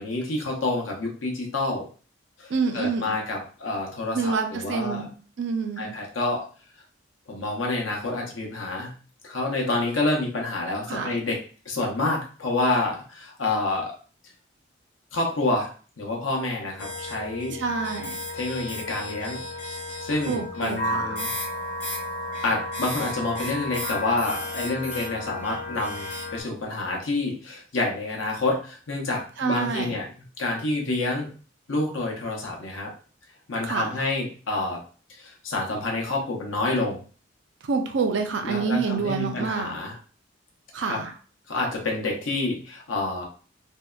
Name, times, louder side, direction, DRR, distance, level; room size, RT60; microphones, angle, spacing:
voice 1, 0.0-1.8 2.4-5.1 5.8-6.4 7.3-8.9 9.2-11.4 11.6-13.9 15.1-15.7 16.0-17.6 18.3-19.4 20.0-21.3 22.4-30.1 30.4-31.3 31.7-32.9 33.5-34.8 35.2-37.0 38.4-39.9 40.9-41.0 41.5-43.2, left 2 dB, 85° left, 0 dB, 0.7 m, -28 dB
voice 2, 2.5-3.2 4.1-5.1 5.4-6.0 10.9-11.1 17.5-18.2 20.3-21.2 29.4-30.0 33.6-33.9 37.6-39.8 40.7-41.1, right 5 dB, 65° right, 5 dB, 0.4 m, -27 dB
sound 1, 16.8-26.4, left 1 dB, 35° left, 0.7 m, -33 dB
2.7 x 2.1 x 2.3 m, 0.39 s
head